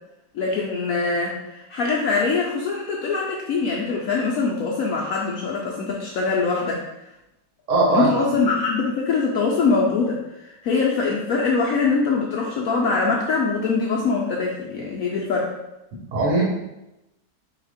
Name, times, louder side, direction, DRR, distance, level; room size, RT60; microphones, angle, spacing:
voice 1, 0.3-7.1 7.9-15.5, left 4 dB, 70° left, -2 dB, 0.8 m, -23 dB
voice 2, 7.7-8.1 16.1-16.4, right 2 dB, 50° right, -3 dB, 1.3 m, -19 dB
3.9 x 2.8 x 4.9 m, 0.93 s
omnidirectional pair, 1.9 m